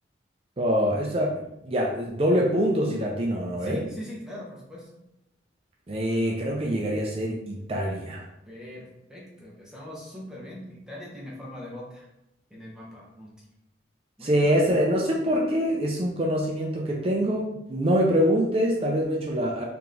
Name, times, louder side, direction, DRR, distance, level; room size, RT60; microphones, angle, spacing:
voice 1, 0.6-1.3 1.6-3.8 5.9-8.2 14.2-19.6, equal, 30° right, -2 dB, 0.5 m, -24 dB
voice 2, 3.6-5.0 8.5-12.1 12.5-13.4 14.2-14.5, equal, 5° right, -5 dB, 0.9 m, -41 dB
3.4 x 3.0 x 3.8 m, 0.84 s
head